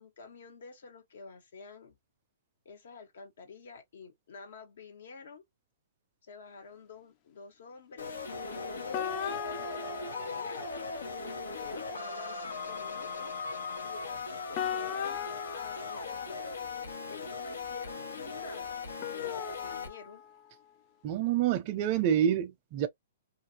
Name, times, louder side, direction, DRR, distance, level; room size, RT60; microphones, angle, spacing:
voice 1, 0.0-2.0 2.6-5.4 6.2-10.6 11.2-13.3 13.8-15.2 15.5-16.6 17.1-18.8 19.1-20.2, left 4 dB, 70° left, 1.4 m, -49 dB
sound 1, 8.0-19.9, left 4 dB, 90° left, 1.2 m, -38 dB
sound 2, 8.9-10.9 14.5-16.7 19.0-20.5, left 9 dB, 35° left, 0.5 m, -39 dB
voice 2, 21.0-22.9, right 10 dB, 40° right, 0.5 m, -27 dB
2.7 x 2.5 x 2.8 m
hypercardioid pair, 140°, 0 cm